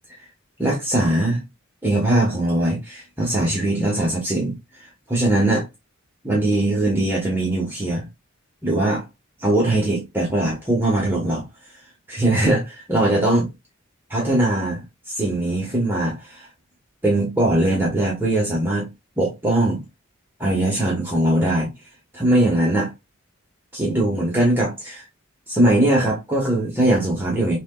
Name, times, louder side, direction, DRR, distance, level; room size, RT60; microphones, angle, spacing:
voice 1, 0.6-1.4 1.8-4.5 5.1-5.7 6.2-8.1 8.6-9.0 9.4-11.4 12.1-13.4 14.1-16.5 17.0-18.9 19.2-19.8 20.4-21.7 22.1-22.9 23.7-25.0 25.5-27.6, right 1 dB, 10° right, 1.1 m, -21 dB
6.2 x 2.9 x 2.2 m
head